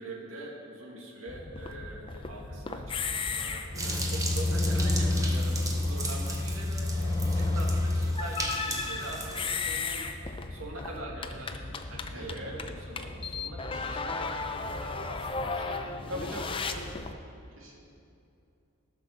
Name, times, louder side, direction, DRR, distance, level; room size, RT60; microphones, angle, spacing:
voice 1, 0.0-11.6 11.9-16.1, right 2 dB, 85° right, -1 dB, 2.1 m, -44 dB
sound 1, 1.3-17.1, left 2 dB, 25° left, 0.5 m, -32 dB
sound 2, 3.7-9.4, right 2 dB, 15° right, 1.0 m, -37 dB
voice 2, 12.1-12.5 16.1-16.9 17.6-17.9, equal, 70° right, -3 dB, 2.4 m, -40 dB
13.0 x 6.0 x 6.5 m, 2.6 s
head